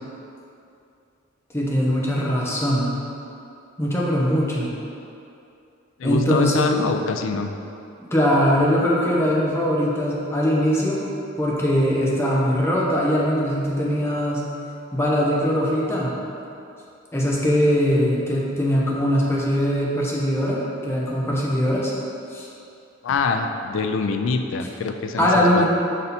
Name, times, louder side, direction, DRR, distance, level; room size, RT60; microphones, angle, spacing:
voice 1, 1.5-2.9 3.8-4.7 6.0-6.8 8.1-11.0 11.4-14.5 14.9-16.1 17.1-21.9 22.3-22.5 25.2-25.6, equal, 10° left, -5 dB, 0.8 m, -21 dB
voice 2, 6.0-7.5 23.0-25.6, left 4 dB, 65° left, 6 dB, 0.4 m, -24 dB
5.4 x 4.1 x 4.2 m, 2.7 s
head